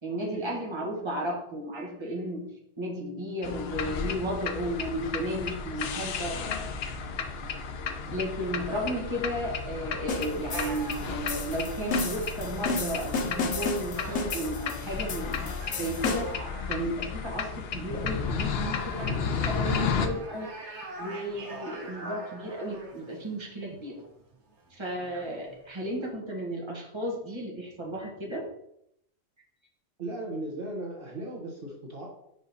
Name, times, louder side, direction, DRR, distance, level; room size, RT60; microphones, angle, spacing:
voice 1, 0.0-6.4 7.9-16.3 16.7-20.5 21.0-24.0 24.7-28.4, right 1 dB, 25° right, -2 dB, 1.5 m, -34 dB
sound 1, 3.4-20.1, left 5 dB, 65° left, 0.8 m, -33 dB
sound 2, 10.1-16.5, left 4 dB, 85° left, 1.1 m, -33 dB
sound 3, 10.5-26.1, right 2 dB, 80° right, 1.4 m, -45 dB
voice 2, 30.0-32.1, right 1 dB, 55° right, -1 dB, 1.2 m, -36 dB
5.3 x 4.9 x 4.1 m, 0.76 s
omnidirectional pair, 1.1 m